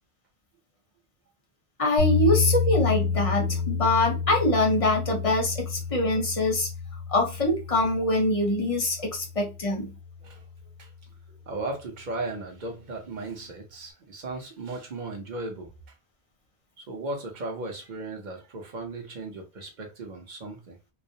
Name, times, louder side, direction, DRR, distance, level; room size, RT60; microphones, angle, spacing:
voice 1, 1.8-6.7 7.1-9.9, left 2 dB, 40° left, 0.6 m, -24 dB
sound 1, 2.0-10.1, left 5 dB, 80° right, 1.2 m, -29 dB
voice 2, 11.5-15.7 16.8-20.8, right 2 dB, 50° right, 0.8 m, -36 dB
2.3 x 2.0 x 2.7 m
omnidirectional pair, 1.1 m